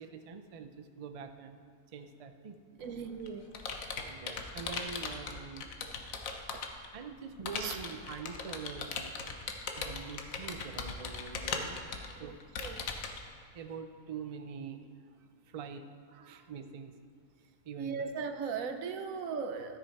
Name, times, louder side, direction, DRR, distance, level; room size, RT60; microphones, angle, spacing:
voice 1, 0.0-1.6 1.9-2.6 4.1-5.7 6.9-9.1 9.8-12.4 13.5-14.9 15.5-15.9 16.3-16.9 17.6-18.1, right 5 dB, 55° right, 7 dB, 0.4 m, -44 dB
Computer keyboard, 2.8-6.9 7.5-13.2, left 5 dB, 85° left, 1.3 m, -39 dB
voice 2, 2.8-3.4 6.5-6.6 7.6-7.8 12.2-12.3 12.6-12.9 16.1-16.5 17.8-19.8, right 5 dB, 90° right, 8 dB, 1.2 m, -38 dB
13.0 x 6.4 x 4.6 m, 2.4 s
omnidirectional pair, 1.4 m